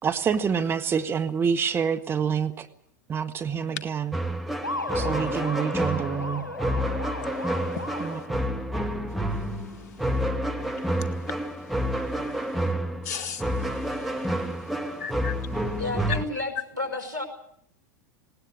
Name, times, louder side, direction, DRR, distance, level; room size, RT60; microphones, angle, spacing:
voice 1, 0.0-2.7 3.1-4.2 4.9-6.5 8.0-8.4, right 7 dB, 25° right, 1.2 m, -27 dB
sound 1, 4.1-16.2, equal, ahead, 2.2 m, -29 dB
sound 2, 4.6-8.5, left 1 dB, 90° left, 2.0 m, -35 dB
voice 2, 7.2-8.3 9.4-10.2 10.7-11.4 11.8-12.2 12.5-12.6 13.0-15.8, left 7 dB, 60° left, 2.1 m, -41 dB
voice 3, 15.8-17.2, left 2 dB, 90° right, 5.3 m, -31 dB
19.5 x 19.0 x 9.5 m
figure-of-eight pair, 90°, 10 cm